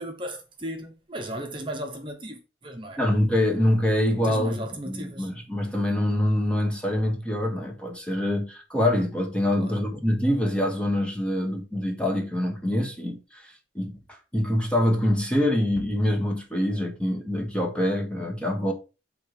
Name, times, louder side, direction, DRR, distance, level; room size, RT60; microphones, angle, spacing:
voice 1, 0.0-3.0 4.2-5.3 9.6-9.8, right 1 dB, 25° right, 1.1 m, -36 dB
voice 2, 3.0-18.7, left 1 dB, 5° left, 1.4 m, -25 dB
7.9 x 4.0 x 4.9 m
head